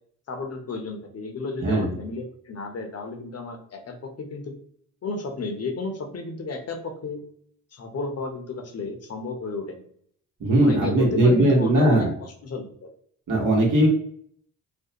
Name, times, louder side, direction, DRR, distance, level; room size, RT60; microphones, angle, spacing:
voice 1, 0.3-4.5 5.0-7.2 7.7-9.8 10.6-12.9, left 3 dB, 45° left, 3 dB, 0.7 m, -33 dB
voice 2, 1.6-2.0 10.4-12.1 13.3-13.9, right 1 dB, 65° right, -2 dB, 1.1 m, -19 dB
2.5 x 2.1 x 2.7 m, 0.63 s
supercardioid pair, 50°, 34 cm